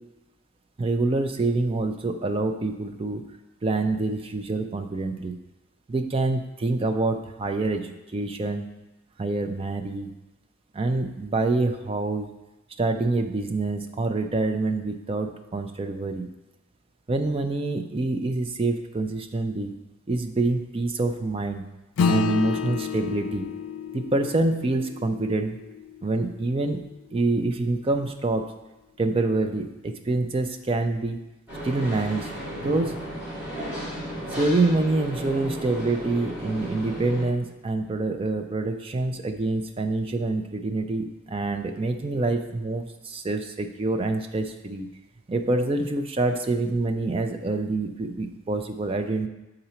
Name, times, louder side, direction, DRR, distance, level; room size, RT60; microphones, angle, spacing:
voice 1, 0.8-3.2 3.6-5.4 5.9-8.6 9.2-10.1 10.7-12.3 12.8-16.3 17.1-19.8 20.1-21.7 22.1-23.5 23.9-25.6 26.0-26.8 27.1-28.5 29.0-31.3 31.6-32.3 32.6-32.9 34.4-44.9 45.3-49.3, right 2 dB, 25° right, 6 dB, 0.4 m, -26 dB
Acoustic guitar / Strum, 22.0-26.8, left 6 dB, 80° left, 0.4 m, -30 dB
sound 1, 31.5-37.2, equal, 5° right, 2.4 m, -34 dB
6.8 x 3.9 x 4.3 m, 1.0 s
head